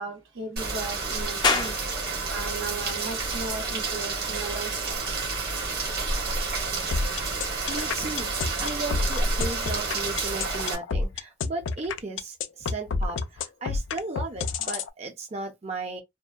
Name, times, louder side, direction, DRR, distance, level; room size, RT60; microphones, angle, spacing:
voice 1, 0.0-1.7 2.3-5.0, right 3 dB, 90° right, 1.0 m, -36 dB
Rain, 0.6-10.7, right 3 dB, 55° right, 1.0 m, -30 dB
sound 1, 1.4-14.5, left 4 dB, 25° left, 0.4 m, -38 dB
sound 2, 6.9-14.9, left 4 dB, 80° left, 0.4 m, -29 dB
voice 2, 7.7-16.0, right 2 dB, 35° right, 0.5 m, -35 dB
2.7 x 2.1 x 2.3 m
head